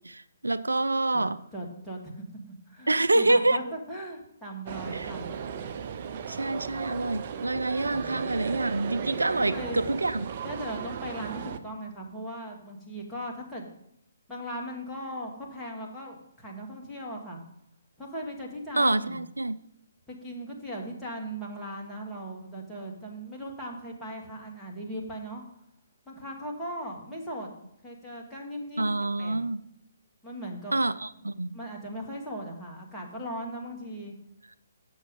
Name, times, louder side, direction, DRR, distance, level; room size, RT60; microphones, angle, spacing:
voice 1, 0.0-1.4 2.9-3.7 4.9-5.1 6.3-10.3 18.8-19.6 28.8-29.6 30.7-31.6, right 2 dB, 85° right, 0.3 m, -27 dB
voice 2, 1.5-2.2 2.7-5.3 9.5-9.8 10.4-13.7 14.3-17.4 18.0-19.2 20.1-25.4 26.1-27.5 27.8-29.4 30.2-30.8 31.5-34.1, equal, 5° left, 1.8 m, -38 dB
sound 1, 4.7-11.6, right 7 dB, 45° right, 0.6 m, -36 dB
7.0 x 6.2 x 5.3 m
figure-of-eight pair, 135°, 0 cm